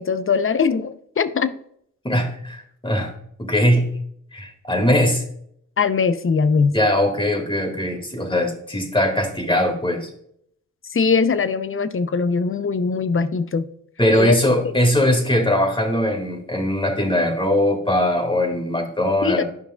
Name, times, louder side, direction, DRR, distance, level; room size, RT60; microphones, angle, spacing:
voice 1, 0.0-1.5 5.8-6.8 10.9-13.7 14.1-14.4 14.6-14.7 19.2-19.4, left 5 dB, 40° left, 13 dB, 0.6 m, -21 dB
voice 2, 2.0-3.1 3.4-4.0 4.3-5.2 6.7-10.1 14.0-19.4, left 1 dB, 15° left, 4 dB, 1.9 m, -20 dB
9.8 x 5.4 x 2.2 m, 0.67 s
supercardioid pair, 45°, 33 cm